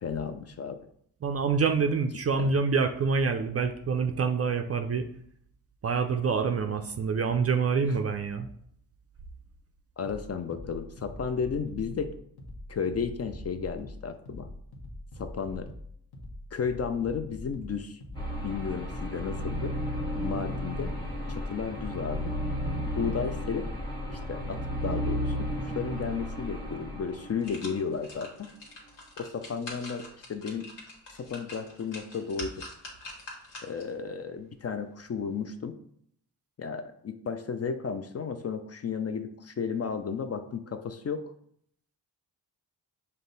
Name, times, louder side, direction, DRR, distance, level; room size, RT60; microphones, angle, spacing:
voice 1, 0.0-0.8 2.4-2.5 10.0-12.1 12.7-14.5 15.2-15.7 16.5-18.0 18.4-19.7 20.2-20.9 21.3-22.3 23.0-23.7 24.1-28.5 29.2-30.7 31.2-32.6 33.6-35.7 36.6-41.2, left 6 dB, 35° left, 9 dB, 0.4 m, -33 dB
voice 2, 1.2-5.1 5.8-8.5, right 5 dB, 35° right, 7 dB, 0.4 m, -26 dB
sound 1, 10.0-25.0, left 1 dB, 55° left, 1.1 m, -44 dB
sound 2, 18.1-27.7, equal, 10° left, 1.2 m, -33 dB
sound 3, 26.5-26.6 27.1-34.0 34.4-34.5, left 2 dB, 70° left, 1.3 m, -45 dB
5.2 x 2.2 x 3.9 m, 0.67 s
supercardioid pair, 50°, 44 cm